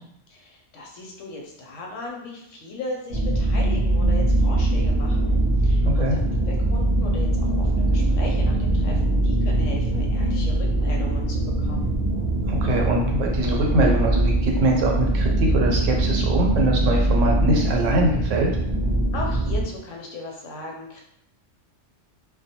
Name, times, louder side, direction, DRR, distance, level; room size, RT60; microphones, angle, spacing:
voice 1, 0.3-6.2 6.5-11.9 19.1-21.0, left 2 dB, 90° left, 0 dB, 0.9 m, -37 dB
sound 1, 3.1-19.6, right 1 dB, 45° right, 0.5 m, -22 dB
voice 2, 5.8-6.2 12.5-18.5, right 1 dB, 90° right, 0 dB, 1.0 m, -23 dB
2.2 x 2.1 x 2.8 m, 0.74 s
omnidirectional pair, 1.2 m